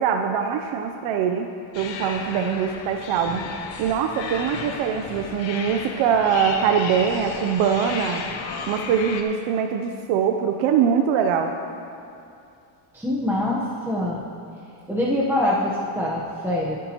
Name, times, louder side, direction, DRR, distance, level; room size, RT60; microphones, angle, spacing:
voice 1, 0.0-3.5 3.8-8.2 8.7-11.5, right 7 dB, 75° right, 5 dB, 0.7 m, -23 dB
sound 1, 1.7-9.2, left 5 dB, 65° left, 1.1 m, -34 dB
voice 2, 12.9-14.2 14.9-16.8, left 1 dB, 5° right, -5 dB, 1.0 m, -24 dB
19.5 x 8.5 x 3.0 m, 2.6 s
cardioid pair, 130°, 48 cm